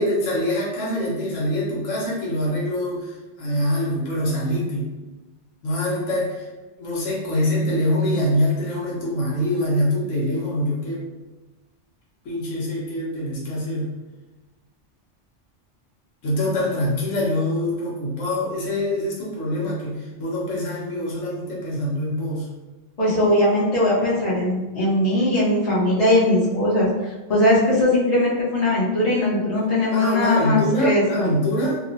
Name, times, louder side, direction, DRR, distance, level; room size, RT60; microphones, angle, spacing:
voice 1, 0.0-4.9 5.6-6.5 6.8-11.0 12.2-13.9 16.2-22.5 29.9-31.8, left 1 dB, 90° left, -5 dB, 1.2 m, -24 dB
voice 2, 23.0-26.9 27.3-31.3, left 1 dB, 35° left, -8 dB, 0.9 m, -20 dB
2.9 x 2.2 x 2.6 m, 1.1 s
omnidirectional pair, 1.2 m